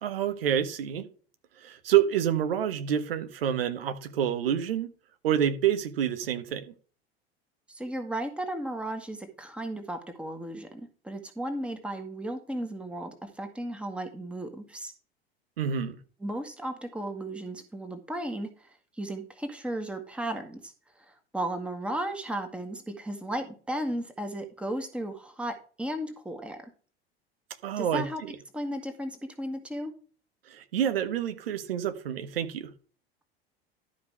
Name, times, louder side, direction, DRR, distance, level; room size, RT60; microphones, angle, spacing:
voice 1, 0.0-1.1 1.6-4.9 5.2-6.7 15.6-16.0 27.6-28.3 30.5-32.7, right 9 dB, 65° right, 1.2 m, -28 dB
voice 2, 7.7-14.9 16.2-18.7 19.0-20.7 21.1-26.6 27.8-28.2 28.5-29.9, right 1 dB, 5° right, 1.6 m, -35 dB
12.0 x 5.1 x 4.7 m
figure-of-eight pair, 75°, 31 cm